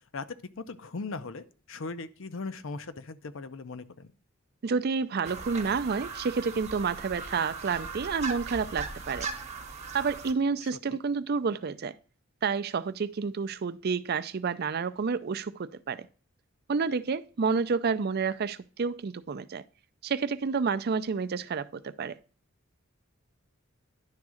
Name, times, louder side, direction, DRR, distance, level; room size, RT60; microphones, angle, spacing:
voice 1, 0.6-4.1 10.9-11.0, left 3 dB, 65° left, 0.6 m, -39 dB
voice 2, 4.6-9.3 9.9-11.9 12.4-16.1 16.7-19.6 20.0-22.2, right 5 dB, 50° right, 0.4 m, -29 dB
sound 1, 5.2-10.3, right 4 dB, 30° right, 1.0 m, -38 dB
10.5 x 3.6 x 6.3 m
head